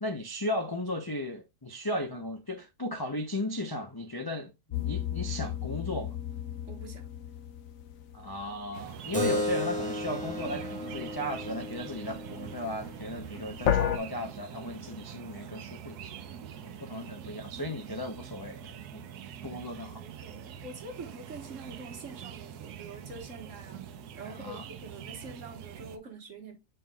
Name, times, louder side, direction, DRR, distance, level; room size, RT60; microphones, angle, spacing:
voice 1, 0.0-6.2 8.1-16.1 16.6-19.0 19.4-20.0 24.2-24.6, left 1 dB, 35° left, 0.4 m, -36 dB
sound 1, 4.7-8.9 13.7-14.0, left 9 dB, 65° left, 1.0 m, -32 dB
voice 2, 6.7-7.1 16.9-17.3 19.5-23.9 24.1-26.6, right 3 dB, 50° right, 1.7 m, -46 dB
sound 2, 8.7-26.0, right 9 dB, 75° right, 1.2 m, -44 dB
Keyboard (musical), 9.1-14.2, left 1 dB, 5° left, 1.5 m, -36 dB
7.2 x 5.7 x 2.3 m
omnidirectional pair, 1.7 m